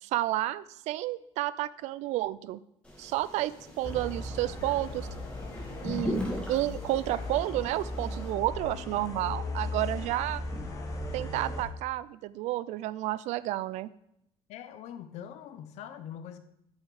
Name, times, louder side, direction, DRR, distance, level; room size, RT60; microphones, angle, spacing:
voice 1, 0.0-2.6 3.0-3.5 3.8-5.1 5.8-10.4 11.1-13.9, right 16 dB, 75° right, 17 dB, 0.4 m, -31 dB
sound 1, 2.8-8.3, left 1 dB, 10° left, 1.9 m, -39 dB
sound 2, 3.8-11.6, left 2 dB, 30° left, 1.3 m, -37 dB
sound 3, 6.6-7.5 10.5-11.4, right 3 dB, 20° right, 0.9 m, -53 dB
voice 2, 14.5-16.4, left 9 dB, 70° left, 10 dB, 0.7 m, -43 dB
8.8 x 5.7 x 4.8 m, 0.76 s
cardioid pair, 150°, 12 cm